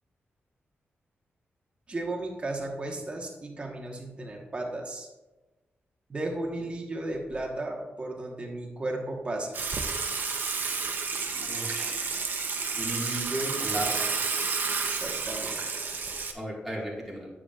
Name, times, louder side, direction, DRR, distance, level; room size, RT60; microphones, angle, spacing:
voice 1, 1.9-5.1 6.1-9.5 14.8-15.8, right 2 dB, 25° right, 0 dB, 1.2 m, -34 dB
Water / Water tap faucet / Sink (filling or washing), 9.5-16.3, right 4 dB, 50° right, 0.7 m, -31 dB
voice 2, 11.5-12.0 12.8-13.9 16.3-17.3, right 1 dB, ahead, -4 dB, 1.8 m, -34 dB
9.8 x 7.2 x 2.4 m, 1.1 s
wide cardioid pair, 155°, 4 cm